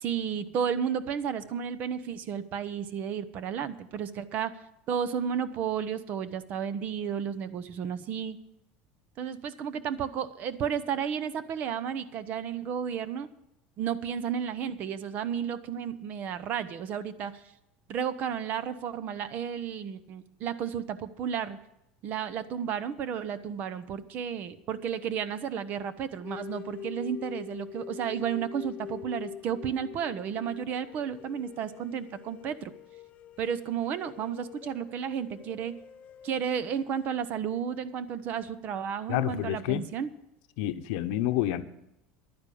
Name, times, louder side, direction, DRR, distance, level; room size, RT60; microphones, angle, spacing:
voice 1, 0.0-4.6 4.9-8.4 9.2-13.3 13.8-17.4 17.9-21.6 22.0-32.7 33.4-35.8 36.2-40.1, right 8 dB, 45° right, 14 dB, 0.9 m, -32 dB
sound 1, 26.2-37.1, left 10 dB, 35° left, 0.6 m, -45 dB
voice 2, 39.1-39.8 40.6-41.6, left 13 dB, 70° left, 11 dB, 0.8 m, -28 dB
11.5 x 9.5 x 7.0 m, 0.85 s
cardioid pair, 145°, 4 cm